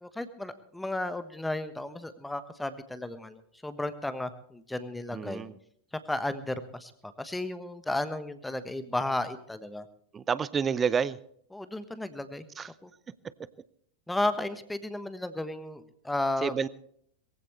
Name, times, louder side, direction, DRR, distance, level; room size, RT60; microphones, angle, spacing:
voice 1, 0.0-5.4 6.1-9.9 11.5-12.4 12.8-12.9 14.1-16.7, left 1 dB, 5° left, 12 dB, 1.3 m, -34 dB
voice 2, 5.1-5.5 10.1-11.2 12.6-12.7 16.4-16.7, right 6 dB, 20° right, 19 dB, 0.7 m, -28 dB
21.5 x 15.5 x 3.2 m, 0.65 s
figure-of-eight pair, 90°, 0 cm